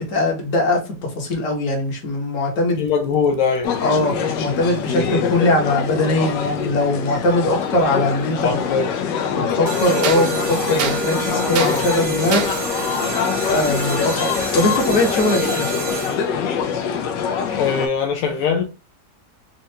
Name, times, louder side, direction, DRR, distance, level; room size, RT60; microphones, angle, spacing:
voice 1, 0.1-2.8 3.8-8.6 9.3-12.4 13.5-15.6, left 1 dB, 50° left, 1.4 m, -21 dB
sound 1, 2.7-4.1 5.4-5.5 7.6-7.7 8.4-8.5 10.0-12.7, right 7 dB, 70° right, 1.0 m, -29 dB
voice 2, 2.8-3.7 8.4-8.9 17.6-18.6, left 6 dB, 65° left, 0.8 m, -21 dB
sound 2, 3.6-17.9, left 7 dB, 85° left, 1.3 m, -24 dB
sound 3, 9.7-16.4, right 4 dB, 90° right, 1.7 m, -29 dB
4.4 x 2.4 x 2.7 m
omnidirectional pair, 1.9 m